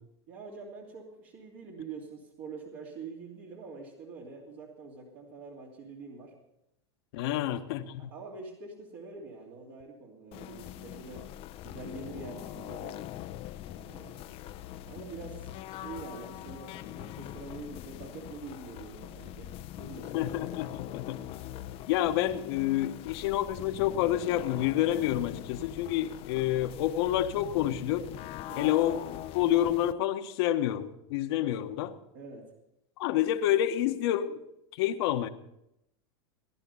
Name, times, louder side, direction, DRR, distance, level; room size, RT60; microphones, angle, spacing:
voice 1, 0.3-6.3 7.2-7.4 8.1-11.3 11.6-13.0 13.6-14.3 14.8-20.3 28.5-28.8 32.1-32.5, right 4 dB, 55° right, -2 dB, 2.9 m, -45 dB
voice 2, 7.1-8.1 20.1-21.2 21.9-28.1 28.6-29.0 29.3-31.9 33.0-34.4 34.8-35.3, left 12 dB, 65° left, 8 dB, 1.3 m, -28 dB
sound 1, 10.3-29.9, left 13 dB, 40° left, 0.7 m, -42 dB
18.0 x 11.0 x 5.5 m, 0.83 s
hypercardioid pair, 115°, 14 cm